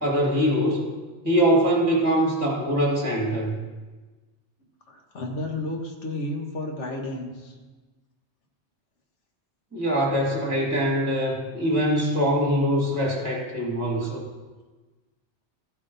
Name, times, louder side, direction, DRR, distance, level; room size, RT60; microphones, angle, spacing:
voice 1, 0.0-0.9 1.2-3.6 9.7-14.2, equal, 15° right, -2 dB, 1.6 m, -23 dB
voice 2, 4.9-7.6, left 1 dB, 80° left, 2 dB, 1.7 m, -32 dB
13.5 x 8.1 x 4.0 m, 1.3 s
omnidirectional pair, 1.2 m